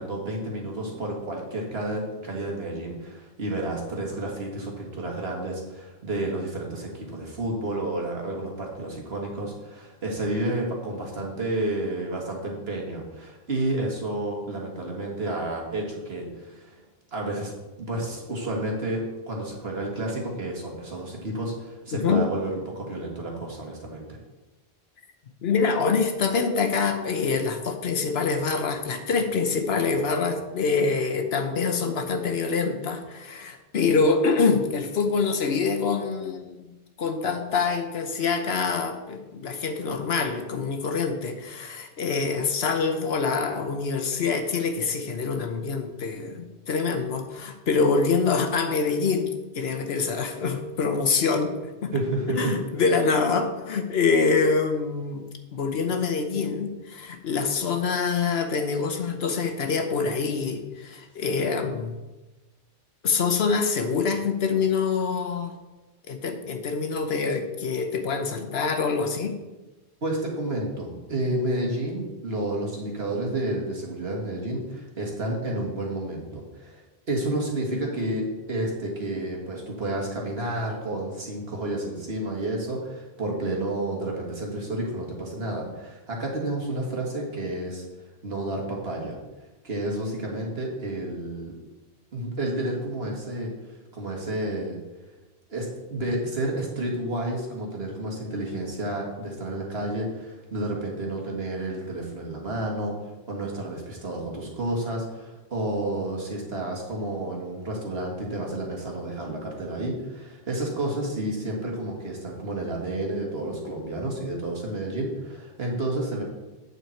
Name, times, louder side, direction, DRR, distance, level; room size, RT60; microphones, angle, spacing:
voice 1, 0.0-16.8 17.1-17.5 17.8-24.2 51.9-52.5 70.0-76.8 77.1-87.8 88.2-89.2 89.6-91.6 92.1-93.5 93.9-94.8 95.5-102.9 103.3-116.2, right 1 dB, 70° right, -1 dB, 2.0 m, -30 dB
voice 2, 25.4-36.7 37.0-51.5 51.8-51.9 52.3-55.3 55.5-61.9 63.0-65.5 66.1-69.3, left 4 dB, 75° left, 6 dB, 1.1 m, -25 dB
8.4 x 6.7 x 4.4 m, 1.1 s
omnidirectional pair, 1.1 m